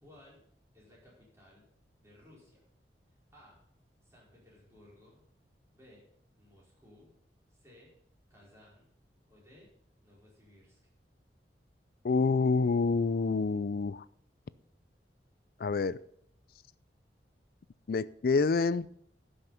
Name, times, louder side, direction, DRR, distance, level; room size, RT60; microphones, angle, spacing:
voice 1, 0.0-0.4 0.7-1.6 2.0-2.7 3.3-3.6 4.0-5.2 5.7-6.0 6.4-7.1 7.5-7.9 8.3-8.9 9.3-9.7 10.0-10.8, left 1 dB, 15° right, -5 dB, 4.9 m, -59 dB
voice 2, 12.0-14.0 15.6-16.0 17.9-19.0, left 4 dB, 55° left, 18 dB, 0.4 m, -27 dB
12.0 x 6.4 x 5.8 m, 0.66 s
head